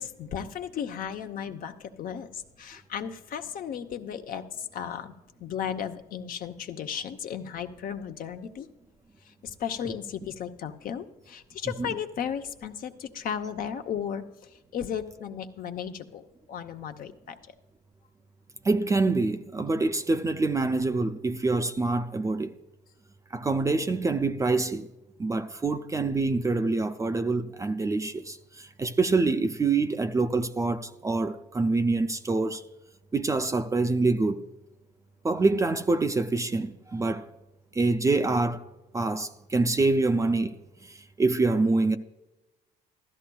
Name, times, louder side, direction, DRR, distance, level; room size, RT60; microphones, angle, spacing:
voice 1, 0.0-5.1 5.4-8.7 9.2-16.2 16.5-17.5, left 8 dB, 55° left, 0.8 m, -35 dB
voice 2, 18.6-22.6 23.3-24.9 25.2-32.6 33.1-34.4 35.2-37.3 37.7-38.6 38.9-42.0, right 3 dB, 20° right, 0.4 m, -26 dB
15.0 x 13.0 x 2.3 m
cardioid pair, 110°, 17 cm